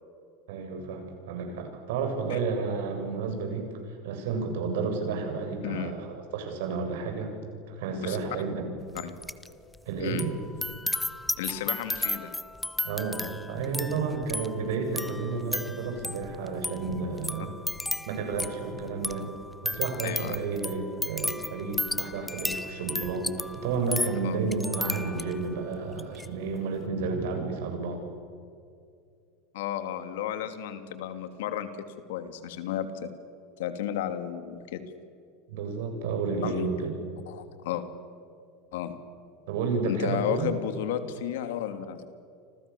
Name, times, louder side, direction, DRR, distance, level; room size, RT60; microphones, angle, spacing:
voice 1, 0.5-3.6 4.0-7.3 7.7-8.5 9.9-10.3 12.8-17.5 18.1-19.3 19.6-23.3 23.6-28.0 35.5-36.9 39.5-40.5, right 4 dB, 75° right, 4 dB, 7.8 m, -31 dB
sound 1, 9.0-9.5 9.7-25.5 25.9-26.3, left 2 dB, 5° left, 1.1 m, -34 dB
voice 2, 11.4-12.3 20.0-20.4 24.2-24.4 29.5-31.7 32.1-33.1 33.6-34.8 36.4-36.6 37.3-37.9 38.7-39.0 39.8-42.0, left 10 dB, 75° left, 9 dB, 2.9 m, -33 dB
30.0 x 26.5 x 7.3 m, 2.3 s
hypercardioid pair, 105°, 0 cm